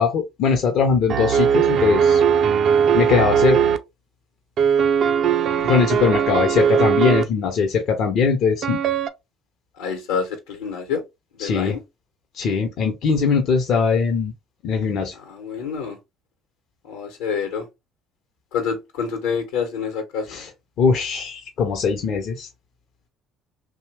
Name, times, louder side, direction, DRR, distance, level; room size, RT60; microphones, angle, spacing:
voice 1, 0.0-2.2 2.9-3.6 5.6-8.8 11.4-11.8 12.3-14.3 14.6-15.1 20.3-20.5 20.8-22.5, left 5 dB, 55° left, 0.5 m, -20 dB
sound 1, 1.1-3.8 4.6-7.2 8.6-9.1, right 7 dB, 55° right, 0.3 m, -19 dB
voice 2, 9.8-11.0 11.4-11.8 15.2-16.0 16.8-17.7 18.5-20.4, left 6 dB, 75° left, 0.8 m, -27 dB
2.7 x 2.1 x 3.2 m
hypercardioid pair, 60°, 0 cm